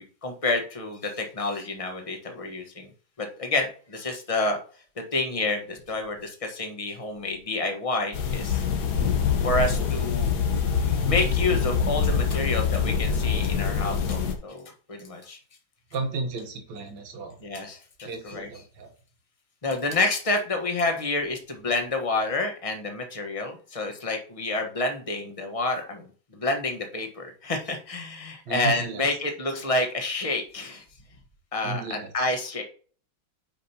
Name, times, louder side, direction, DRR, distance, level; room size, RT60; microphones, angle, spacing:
voice 1, 0.2-2.9 3.2-4.6 5.1-8.6 9.4-10.3 11.0-15.4 17.4-18.5 19.6-26.1 26.3-30.8 31.5-32.6, left 2 dB, 20° left, 4 dB, 1.2 m, -29 dB
sound 1, 8.1-14.3, left 6 dB, 70° left, 1.7 m, -25 dB
voice 2, 15.9-17.4 18.0-18.9 28.5-29.1 31.6-32.3, right 3 dB, 80° right, 3 dB, 1.8 m, -34 dB
8.9 x 5.2 x 2.9 m, 0.42 s
omnidirectional pair, 1.8 m